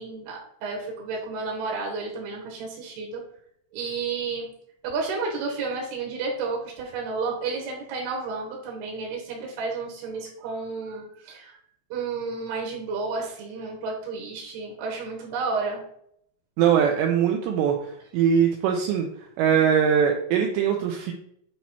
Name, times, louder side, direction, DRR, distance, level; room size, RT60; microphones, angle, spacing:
voice 1, 0.0-3.2 3.7-4.5 4.8-11.6 11.9-15.8, right 4 dB, 70° right, -1 dB, 2.5 m, -31 dB
voice 2, 16.6-17.8 18.1-19.1 19.4-21.1, right 8 dB, 90° right, 2 dB, 2.4 m, -21 dB
8.7 x 3.0 x 4.2 m, 0.71 s
omnidirectional pair, 5.6 m